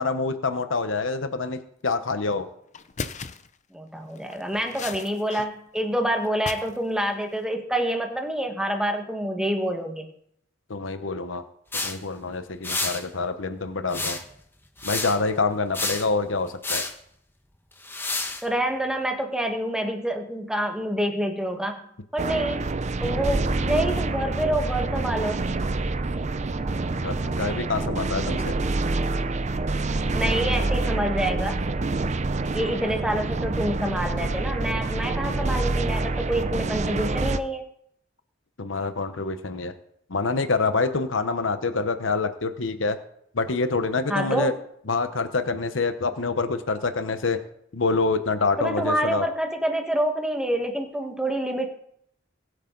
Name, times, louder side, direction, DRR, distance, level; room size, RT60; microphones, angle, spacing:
voice 1, 0.0-2.5 10.7-11.4 11.7-14.2 14.8-16.9 27.0-28.5 32.6-32.8 38.6-39.7 40.1-43.0 43.3-44.5 44.9-47.4 47.7-49.3, left 3 dB, 80° left, 9 dB, 1.0 m, -26 dB
sound 1, 2.2-2.4 2.7-3.5 4.1-5.5 5.7-6.8 7.1-7.5, left 5 dB, 40° left, 0.7 m, -37 dB
voice 2, 3.7-10.1 18.4-21.8 22.1-22.7 23.0-25.6 30.1-31.6 32.5-37.6 44.1-44.6 48.6-51.7, right 1 dB, 5° right, 3 dB, 1.5 m, -27 dB
sound 2, 11.7-12.0 12.6-13.0 13.9-14.4 14.8-15.2 15.7-16.1 16.6-16.9 17.8-18.4, left 2 dB, 10° left, 1.3 m, -29 dB
sound 3, 22.2-37.4, right 2 dB, 35° right, 0.6 m, -27 dB
22.0 x 8.3 x 3.9 m, 0.69 s
head